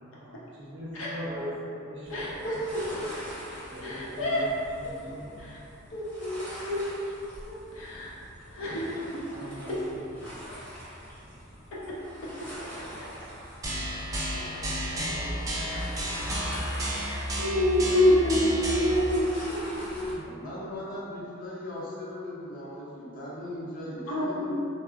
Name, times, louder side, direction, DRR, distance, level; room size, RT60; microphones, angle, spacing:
voice 1, 0.0-3.1 3.7-5.3 9.2-10.3 10.6-11.4 14.6-17.2, equal, 60° right, -5 dB, 0.6 m, -43 dB
sound 1, 2.0-20.1, equal, 10° left, 0.7 m, -44 dB
voice 2, 2.1-2.9 3.8-4.4 5.4-5.6 5.9-6.9 7.4-8.1 8.5-9.2 12.7-12.8 15.7-15.8 16.7-20.1 24.1-24.5, left 1 dB, 80° left, -7 dB, 0.7 m, -27 dB
sound 2, 13.6-19.0, equal, 15° right, 0.3 m, -32 dB
voice 3, 20.0-24.5, left 1 dB, 45° left, -8 dB, 0.7 m, -38 dB
3.2 x 2.0 x 2.4 m, 2.6 s
head